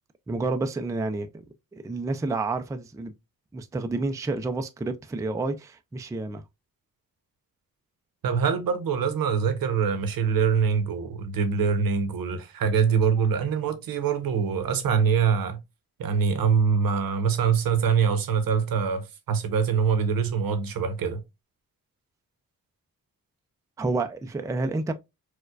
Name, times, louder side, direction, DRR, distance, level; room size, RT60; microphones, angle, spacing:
voice 1, 0.3-1.4 1.7-3.1 3.5-6.4 23.8-24.9, right 3 dB, 10° right, 0.3 m, -29 dB
voice 2, 8.2-15.6 16.0-21.2, right 6 dB, 75° right, 0.8 m, -24 dB
4.4 x 2.2 x 2.3 m
cardioid pair, 95°, 35 cm